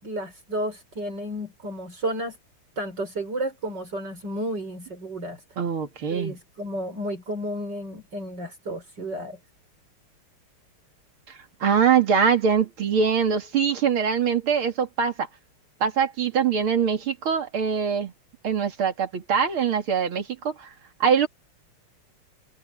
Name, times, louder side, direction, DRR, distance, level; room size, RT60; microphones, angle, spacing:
voice 1, 0.0-2.4 2.8-5.4 6.1-9.4, right 1 dB, 50° right, 6.8 m, -32 dB
voice 2, 5.6-6.4 11.3-15.3 15.8-18.1 18.4-20.7 21.0-21.3, right 7 dB, 75° right, 3.2 m, -23 dB
open air
omnidirectional pair, 2.4 m